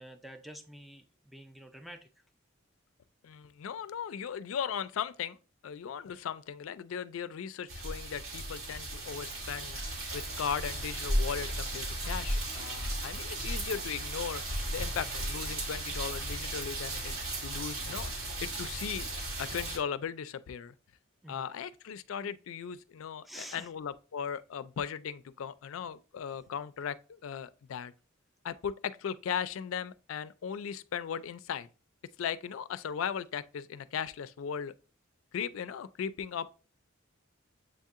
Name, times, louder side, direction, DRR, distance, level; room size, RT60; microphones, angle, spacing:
voice 1, 0.0-2.1 21.2-21.5 23.2-23.7, equal, ahead, 0.4 m, -48 dB
voice 2, 3.2-5.4 5.6-9.8 10.1-14.4 14.7-17.2 17.4-18.1 18.4-19.1 19.4-20.7 21.3-27.9 28.4-31.7 32.2-34.7 35.3-36.5, left 7 dB, 80° left, 0.4 m, -37 dB
sound 1, 7.7-19.8, right 1 dB, 85° right, 1.7 m, -35 dB
7.6 x 2.7 x 2.4 m
head